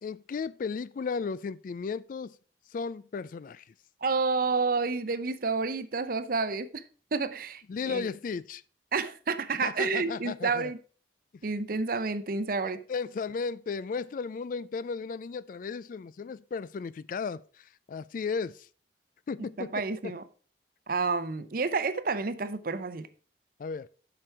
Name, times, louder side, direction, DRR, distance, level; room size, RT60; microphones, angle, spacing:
voice 1, 0.0-2.4 2.7-3.6 7.7-8.6 9.6-10.7 12.9-18.7 19.3-19.7 23.6-23.9, left 5 dB, 50° left, 0.3 m, -35 dB
voice 2, 4.0-6.8 7.1-8.1 8.9-10.8 11.4-12.8 19.6-20.2 20.9-23.1, right 4 dB, 50° right, 0.7 m, -30 dB
7.8 x 6.0 x 4.7 m
head